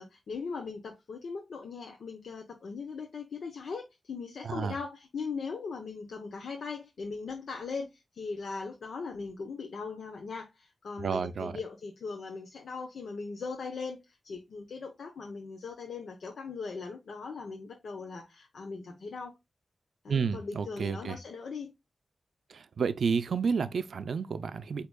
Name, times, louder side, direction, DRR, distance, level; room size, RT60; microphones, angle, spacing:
voice 1, 0.0-19.3 20.0-21.7, left 4 dB, 80° left, 0.8 m, -39 dB
voice 2, 4.4-4.7 11.0-11.6 20.1-21.2 22.5-24.9, right 5 dB, 75° right, 0.4 m, -31 dB
8.0 x 2.9 x 2.3 m
wide cardioid pair, 155°, 0 cm